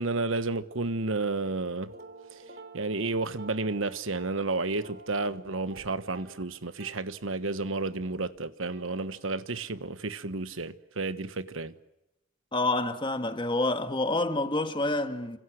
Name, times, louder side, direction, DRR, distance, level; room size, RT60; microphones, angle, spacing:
voice 1, 0.0-1.9 2.7-11.7, right 3 dB, 75° right, 1.3 m, -31 dB
sound 1, 1.9-7.1 7.8-9.2, right 3 dB, 50° right, 3.2 m, -50 dB
voice 2, 12.5-15.4, left 2 dB, 25° left, 1.8 m, -28 dB
30.0 x 26.5 x 6.4 m
head